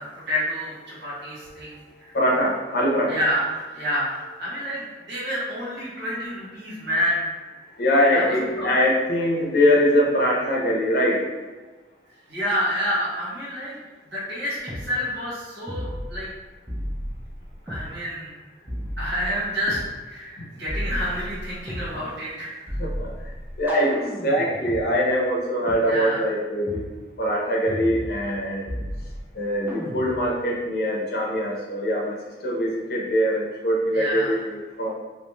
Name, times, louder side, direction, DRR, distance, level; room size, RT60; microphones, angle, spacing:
voice 1, 0.0-2.1 3.1-7.3 8.1-8.8 12.3-16.3 17.6-18.4 19.0-19.8 20.0-22.5 25.8-26.2 33.9-34.4, equal, 75° right, -9 dB, 1.1 m, -29 dB
voice 2, 2.1-3.2 7.8-11.3 22.8-23.1 23.6-26.8 27.2-28.7 29.4-32.1 32.4-34.9, equal, 55° left, -2 dB, 0.5 m, -22 dB
sound 1, 14.7-14.9 15.7-16.3 16.7-17.9 18.7-19.9 20.7-21.9 22.7-24.8 25.7-25.8 26.7-26.9 27.7-28.4 28.7-29.3 29.7-30.3, equal, 10° right, 0.3 m, -33 dB
2.5 x 2.1 x 3.0 m, 1.3 s
head